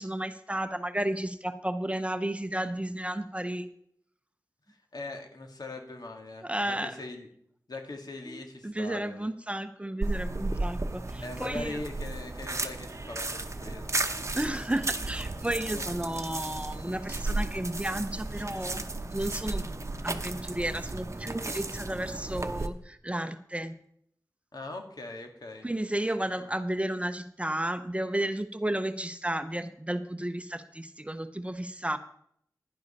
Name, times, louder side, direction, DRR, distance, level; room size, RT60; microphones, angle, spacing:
voice 1, 0.0-3.7 6.4-7.0 8.3-11.8 14.4-18.8 19.1-19.6 20.0-23.7 25.6-32.0, right 1 dB, 20° right, 11 dB, 0.8 m, -32 dB
voice 2, 4.7-7.3 7.7-9.3 11.2-13.9 15.7-15.8 24.5-25.7 26.4-26.5, left 2 dB, 75° left, 4 dB, 1.8 m, -41 dB
sound 1, 10.0-22.7, right 2 dB, 45° right, 0.9 m, -34 dB
11.0 x 10.5 x 4.2 m, 0.67 s
wide cardioid pair, 60°, 7 cm